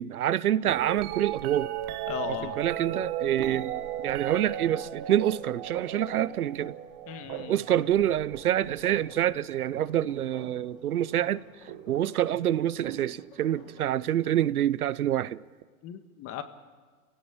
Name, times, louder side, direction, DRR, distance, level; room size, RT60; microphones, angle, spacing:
voice 1, 0.0-1.7 2.3-6.7 7.5-11.4 11.9-15.4, right 11 dB, 90° right, 0.8 m, -27 dB
sound 1, 0.6-10.7 11.7-12.1 12.8-13.8 15.6-15.7, right 12 dB, 35° right, 1.2 m, -37 dB
sound 2, 0.8-13.9, left 8 dB, 75° left, 2.8 m, -54 dB
voice 2, 2.1-2.6 7.1-7.6 15.8-16.4, left 10 dB, 30° left, 1.8 m, -36 dB
28.5 x 17.0 x 8.7 m
hypercardioid pair, 130°, 43 cm